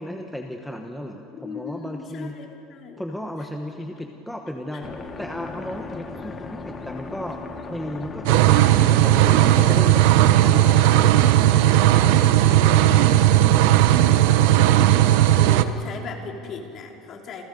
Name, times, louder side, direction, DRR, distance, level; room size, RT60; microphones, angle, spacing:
voice 1, 0.0-2.4 3.0-4.9 5.2-7.4 7.7-10.0 10.4-14.4, equal, ahead, 2 dB, 1.2 m, -34 dB
voice 2, 1.3-3.0 4.7-4.8 15.3-17.4, left 5 dB, 35° left, 1 dB, 3.3 m, -37 dB
sound 1, 4.8-9.8, left 3 dB, 20° left, 1.4 m, -36 dB
sound 2, 8.3-15.6, right 13 dB, 75° right, 1.1 m, -16 dB
29.0 x 29.0 x 5.3 m, 2.9 s
cardioid pair, 165°, 0 cm